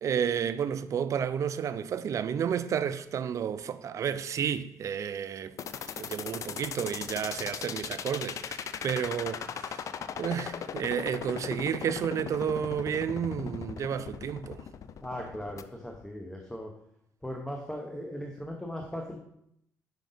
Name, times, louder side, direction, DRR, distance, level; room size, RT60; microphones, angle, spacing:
voice 1, 0.0-5.6 6.0-9.8 10.2-14.6, right 8 dB, 50° right, 0.3 m, -31 dB
sound 1, 5.6-15.6, left 8 dB, 55° left, 0.4 m, -38 dB
voice 2, 15.0-16.7 17.2-19.2, equal, 5° left, 0.8 m, -38 dB
5.2 x 5.1 x 3.9 m
cardioid pair, 90°, 7 cm